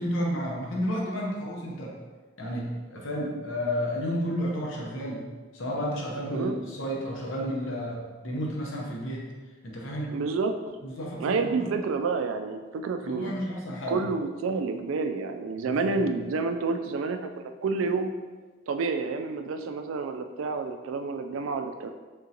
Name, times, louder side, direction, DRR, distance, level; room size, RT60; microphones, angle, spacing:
voice 1, 0.0-1.9 2.4-5.2 5.5-9.3 9.6-10.2 10.8-11.7 13.0-14.0 15.6-16.1, equal, 75° left, -3 dB, 0.9 m, -32 dB
voice 2, 10.1-10.5 11.2-13.3 13.9-18.1 18.7-21.9, right 4 dB, 80° right, 7 dB, 0.3 m, -29 dB
3.8 x 3.6 x 2.8 m, 1.4 s
head